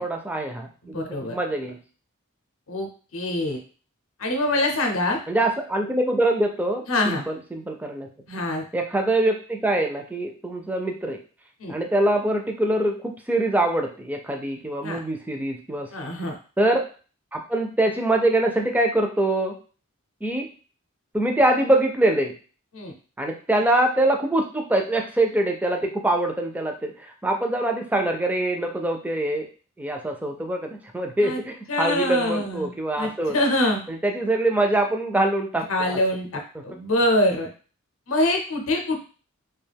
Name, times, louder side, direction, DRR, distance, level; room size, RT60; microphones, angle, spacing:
voice 1, 0.0-1.8 5.3-8.1 8.7-11.2 11.7-15.9 16.6-16.9 17.3-19.6 20.2-20.5 21.1-22.3 23.2-29.5 29.8-33.4 33.9-36.0 36.5-36.6, right 1 dB, 10° right, 3 dB, 0.3 m, -24 dB
voice 2, 0.8-1.4 2.7-3.6 4.2-5.2 6.9-7.2 8.3-8.6 11.6-11.7 14.8-15.0 15.9-16.4 22.7-22.9 31.2-31.4 31.7-32.7 33.0-33.8 35.7-37.5 38.1-39.0, left 1 dB, 75° left, 3 dB, 0.6 m, -24 dB
2.3 x 2.2 x 3.3 m, 0.37 s
head